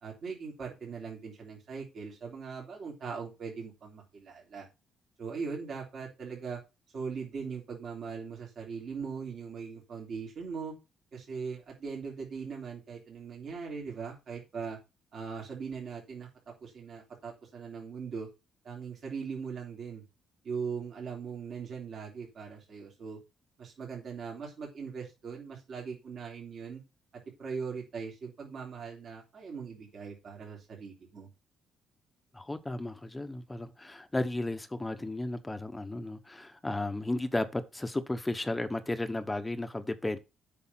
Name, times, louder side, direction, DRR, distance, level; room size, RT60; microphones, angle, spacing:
voice 1, 0.0-4.7 5.2-6.6 6.9-10.7 11.1-14.8 15.1-16.3 16.6-18.3 18.6-20.0 20.4-23.2 23.6-26.8 27.4-31.3, right 5 dB, 60° right, 3.4 m, -40 dB
voice 2, 32.3-40.2, left 2 dB, 15° left, 1.0 m, -34 dB
8.4 x 5.6 x 5.7 m
cardioid pair, 90°, 0 cm